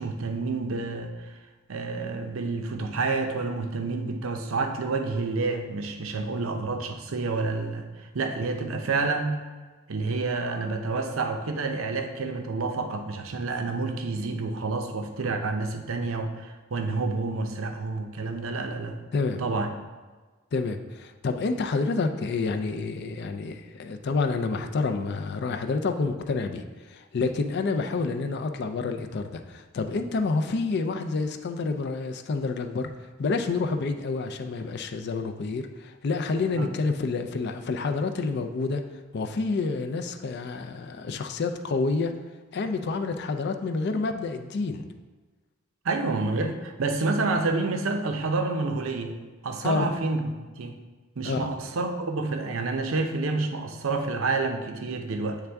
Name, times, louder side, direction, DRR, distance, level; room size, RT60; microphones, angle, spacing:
voice 1, 0.0-1.4 1.7-9.3 9.9-19.0 19.4-19.7 36.5-36.7 45.8-49.2 49.4-50.7 51.2-55.4, right 3 dB, 70° right, 5 dB, 0.6 m, -29 dB
voice 2, 20.5-32.9 33.2-38.8 39.1-42.1 42.5-44.8 49.6-49.9 51.2-51.5, left 3 dB, 50° left, 6 dB, 0.4 m, -28 dB
8.1 x 3.5 x 3.4 m, 1.3 s
head